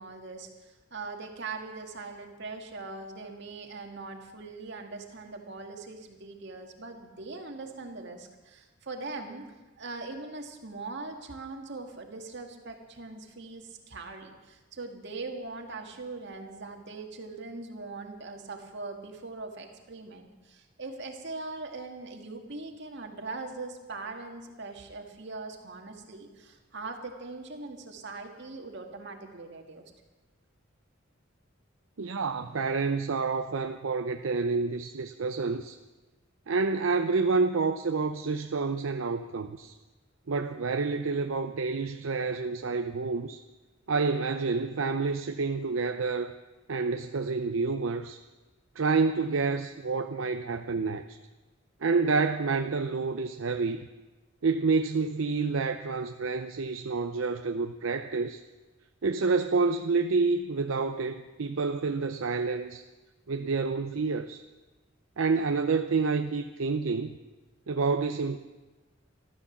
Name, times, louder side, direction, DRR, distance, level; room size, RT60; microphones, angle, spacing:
voice 1, 0.0-9.5 9.8-29.8, right 3 dB, 60° right, 3 dB, 2.0 m, -41 dB
voice 2, 32.0-35.8 36.5-39.7 40.3-43.4 43.9-46.3 46.7-48.2 48.8-51.2 51.8-53.8 54.4-58.4 59.0-62.8 63.3-64.4 65.2-67.1 67.7-68.4, right 4 dB, 80° right, 7 dB, 0.6 m, -28 dB
13.5 x 13.0 x 7.2 m, 1.2 s
head